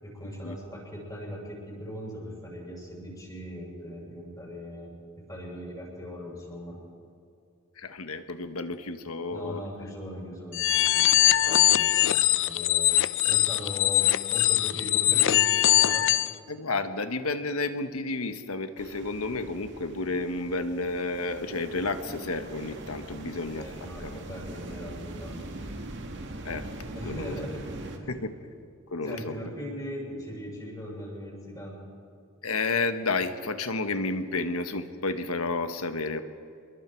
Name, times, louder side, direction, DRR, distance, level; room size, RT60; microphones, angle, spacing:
voice 1, 0.0-4.9 5.3-6.8 9.3-13.0 13.3-14.0 14.3-16.1 23.1-25.4 26.9-27.6 28.0-28.3 29.0-31.8, equal, 15° left, -3 dB, 6.8 m, -40 dB
voice 2, 7.8-9.6 16.5-23.7 24.0-24.2 26.4-26.7 27.0-27.4 28.1-28.5 28.9-29.4 32.4-36.2, left 3 dB, 85° left, 9 dB, 1.4 m, -31 dB
sound 1, 10.5-16.3, left 13 dB, 60° left, 0.6 m, -22 dB
sound 2, 18.8-28.0, right 1 dB, 55° right, 2.2 m, -41 dB
27.0 x 22.0 x 4.6 m, 2.6 s
head